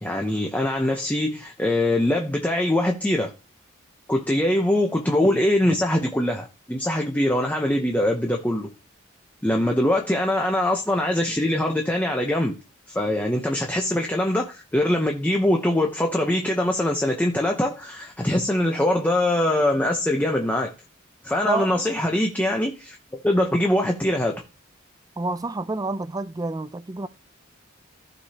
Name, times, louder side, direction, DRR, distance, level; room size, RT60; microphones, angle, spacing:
voice 1, 0.0-3.3 4.1-8.7 9.4-12.5 12.9-20.7 21.2-24.3, left 1 dB, 10° left, 0.8 m, -23 dB
voice 2, 21.4-21.9 25.2-27.1, right 3 dB, 15° right, 0.4 m, -28 dB
14.5 x 5.0 x 2.9 m
head